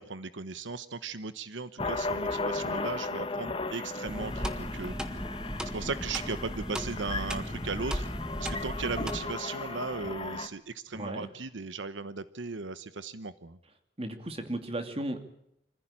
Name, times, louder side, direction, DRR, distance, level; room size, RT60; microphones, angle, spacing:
voice 1, 0.0-5.0 5.7-8.1 8.4-13.6, right 4 dB, 85° right, 13 dB, 1.0 m, -37 dB
sound 1, 1.8-10.5, left 3 dB, 30° left, 1.5 m, -36 dB
sound 2, 4.0-9.2, equal, 5° right, 1.5 m, -36 dB
voice 2, 10.9-11.3 14.0-15.2, right 1 dB, 30° right, 7 dB, 2.6 m, -35 dB
26.0 x 15.5 x 8.9 m, 0.78 s
head